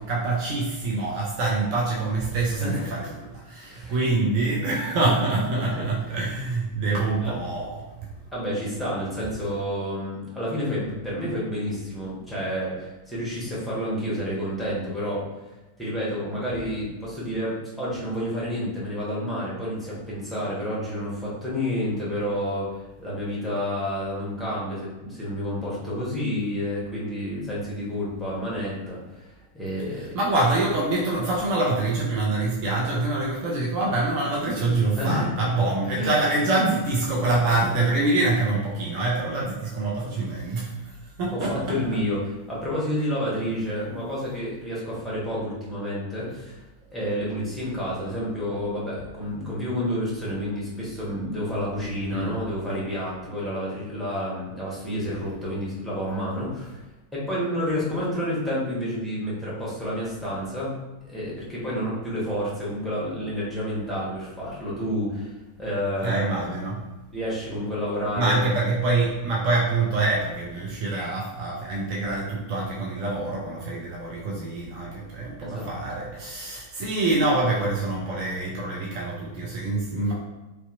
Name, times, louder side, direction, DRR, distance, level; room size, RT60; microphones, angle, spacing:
voice 1, 0.0-8.1 29.9-41.5 52.1-52.4 66.0-66.8 68.1-80.1, right 2 dB, 45° right, -4 dB, 0.5 m, -25 dB
voice 2, 8.3-15.2 15.8-30.1 35.0-35.3 35.9-36.1 41.3-42.2 42.5-46.6 46.9-56.8 57.1-60.7 61.0-65.3 65.6-66.5 67.1-68.5 75.4-75.7, equal, ahead, -8 dB, 1.1 m, -29 dB
2.7 x 2.1 x 2.5 m, 1.1 s
figure-of-eight pair, 90°, 0 cm